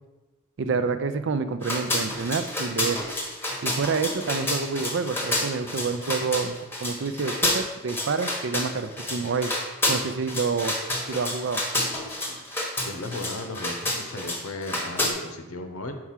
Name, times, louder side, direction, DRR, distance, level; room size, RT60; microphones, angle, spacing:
voice 1, 0.6-3.0 3.6-9.5 9.9-10.7 11.1-11.6, right 4 dB, 55° right, 10 dB, 0.4 m, -28 dB
sound 1, 1.6-15.1, left 1 dB, 10° left, 1.0 m, -29 dB
voice 2, 12.8-15.9, left 2 dB, 85° left, 6 dB, 0.8 m, -35 dB
4.7 x 4.6 x 5.7 m, 1.1 s
head